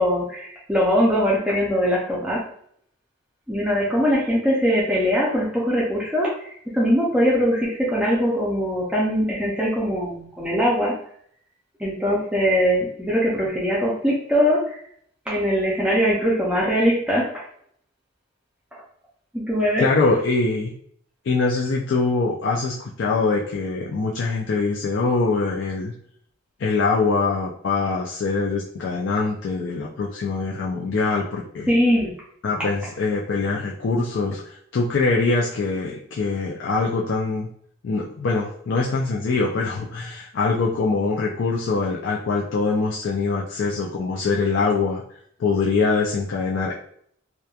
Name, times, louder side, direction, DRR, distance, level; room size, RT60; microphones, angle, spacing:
voice 1, 0.0-2.4 3.5-10.9 11.8-14.8 15.3-17.3 19.3-19.9 31.7-32.1, equal, 5° right, -5 dB, 0.4 m, -21 dB
voice 2, 19.8-20.7 21.2-25.9 26.6-31.7 32.4-37.5 37.8-45.0 45.4-46.8, left 4 dB, 65° left, -2 dB, 0.4 m, -23 dB
2.9 x 2.1 x 2.3 m, 0.64 s
head